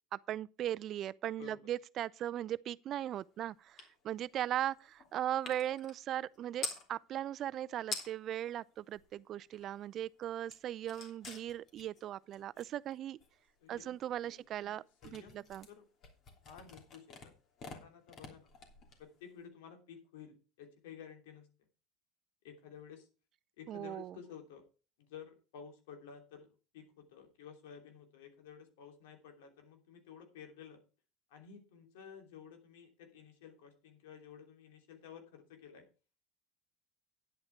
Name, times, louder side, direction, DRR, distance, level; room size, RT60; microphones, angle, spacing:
voice 1, 0.1-13.2 13.7-15.7 23.7-24.2, right 11 dB, 45° right, 0.4 m, -38 dB
sound 1, 3.8-3.9 4.2-6.9 7.5-7.6 7.8-8.4 8.8-9.9 10.2-19.4, left 4 dB, 40° left, 3.1 m, -47 dB
voice 2, 13.6-15.8 16.4-17.3 17.7-18.5 19.0-21.5 22.4-23.1 23.6-24.6 25.0-30.8 31.3-35.9, left 7 dB, 85° left, 3.0 m, -53 dB
10.0 x 8.7 x 4.5 m
supercardioid pair, 120°, 0 cm